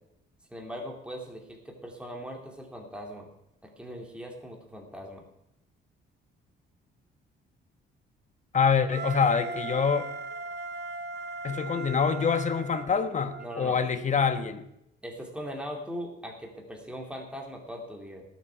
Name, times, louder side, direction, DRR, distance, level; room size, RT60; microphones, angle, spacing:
voice 1, 0.5-3.3 3.8-5.2 13.4-13.8 15.0-18.2, equal, 5° right, 1 dB, 2.7 m, -40 dB
voice 2, 8.5-10.1 11.4-14.7, left 6 dB, 35° left, 9 dB, 1.3 m, -25 dB
Wind instrument woodwind instrument, 8.9-13.7, right 4 dB, 60° right, 1.0 m, -38 dB
19.5 x 7.4 x 4.6 m, 0.82 s
cardioid pair, 90°, 20 cm